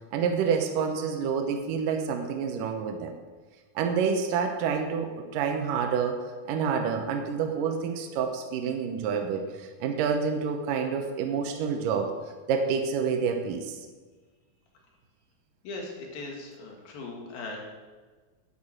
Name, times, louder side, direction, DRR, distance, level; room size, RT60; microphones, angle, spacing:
voice 1, 0.1-3.2 3.8-9.4 9.8-12.1 12.5-13.8, right 6 dB, 75° right, 4 dB, 2.5 m, -28 dB
voice 2, 15.6-17.6, left 3 dB, 90° left, 0 dB, 3.9 m, -39 dB
10.5 x 9.4 x 6.1 m, 1.4 s
omnidirectional pair, 4.1 m